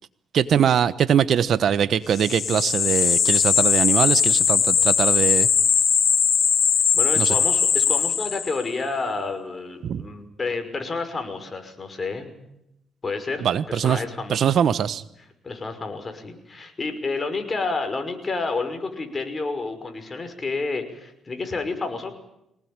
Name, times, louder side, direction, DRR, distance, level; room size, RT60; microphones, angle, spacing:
voice 1, 0.3-5.5 7.2-7.3 9.8-10.0 13.4-14.0 14.3-15.0, right 8 dB, 60° right, 15 dB, 1.1 m, -22 dB
sound 1, 2.1-8.7, left 7 dB, 50° left, 1.0 m, -20 dB
voice 2, 6.9-12.3 13.0-14.6 15.4-22.1, left 3 dB, 30° left, 7 dB, 5.8 m, -30 dB
25.0 x 19.0 x 9.0 m, 0.82 s
cardioid pair, 90°, 0 cm